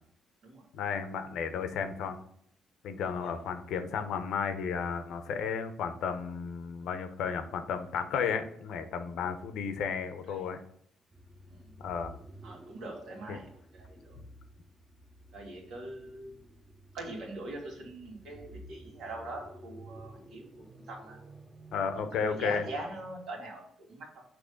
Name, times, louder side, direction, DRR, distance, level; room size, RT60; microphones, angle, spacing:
voice 1, 0.7-2.2 2.8-10.6 11.8-12.1 13.3-13.4 14.1-14.3 21.7-22.6, left 6 dB, 85° left, 8 dB, 0.7 m, -33 dB
sound 1, 11.1-23.3, right 1 dB, 15° right, 0.8 m, -52 dB
voice 2, 12.4-14.2 15.3-16.5 16.9-21.2 21.9-24.2, right 2 dB, 80° right, -1 dB, 2.0 m, -43 dB
6.2 x 3.1 x 5.1 m, 0.68 s
cardioid pair, 90°, 0 cm